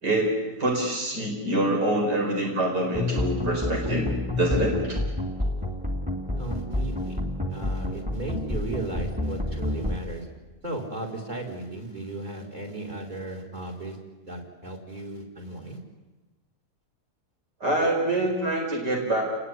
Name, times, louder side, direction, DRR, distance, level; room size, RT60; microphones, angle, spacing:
voice 1, 0.0-4.1 4.4-5.0 17.6-19.3, right 1 dB, 90° right, 0 dB, 5.5 m, -25 dB
sound 1, 2.9-10.0, left 2 dB, 5° right, 2.7 m, -29 dB
voice 2, 6.4-7.2 7.5-10.3 10.6-14.0 14.2-15.8, right 2 dB, 25° right, 4 dB, 4.9 m, -35 dB
30.0 x 20.0 x 9.8 m, 1.2 s
omnidirectional pair, 1.7 m